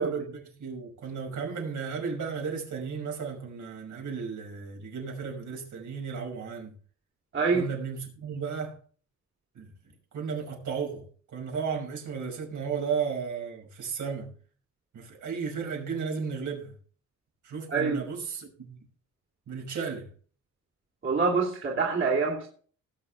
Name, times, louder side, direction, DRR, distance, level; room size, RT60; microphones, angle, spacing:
voice 1, 0.0-6.7 7.5-8.8 9.5-9.7 10.1-11.1 11.3-14.3 14.9-16.7 17.4-18.8 19.5-20.1, right 6 dB, 75° right, 5.8 m, -34 dB
voice 2, 7.3-7.7 17.7-18.1 21.0-22.5, right 4 dB, 40° right, 3.2 m, -26 dB
19.0 x 7.9 x 3.4 m
cardioid pair, 125°, 30 cm